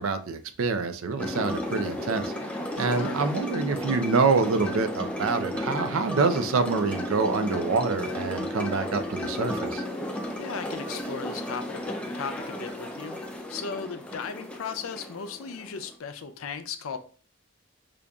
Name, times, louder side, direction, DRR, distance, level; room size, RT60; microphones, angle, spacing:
voice 1, 0.0-2.3 2.8-9.8, right 4 dB, 75° right, 0.4 m, -26 dB
sound 1, 1.2-15.9, left 1 dB, 5° left, 0.3 m, -33 dB
voice 2, 2.8-3.2 10.4-13.2 13.5-17.0, left 6 dB, 80° left, 0.5 m, -36 dB
5.0 x 2.5 x 2.3 m
head